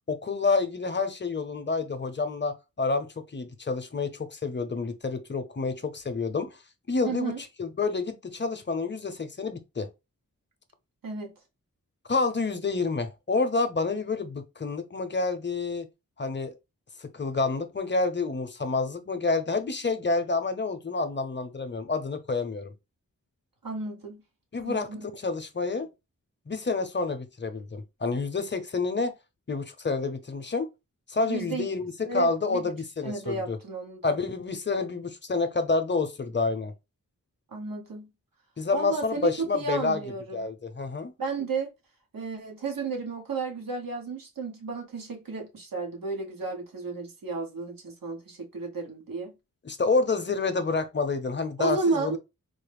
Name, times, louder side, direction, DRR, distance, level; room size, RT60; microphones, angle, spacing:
voice 1, 0.1-6.6 6.9-7.3 7.6-9.9 12.1-15.9 16.2-16.6 17.0-22.7 24.5-24.9 25.1-25.9 26.5-29.1 29.5-30.7 31.1-33.6 34.0-36.7 38.6-40.0 40.3-41.1 49.6-52.2, left 3 dB, 35° left, 0.7 m, -28 dB
voice 2, 7.0-7.4 11.0-11.3 23.6-24.2 24.6-25.0 31.3-31.7 32.0-32.7 33.0-34.2 34.7-34.8 37.5-38.1 38.7-40.5 41.2-41.7 42.1-49.3 51.6-52.2, right 4 dB, 80° right, 1.1 m, -33 dB
3.9 x 2.0 x 3.3 m
wide cardioid pair, 75°, 34 cm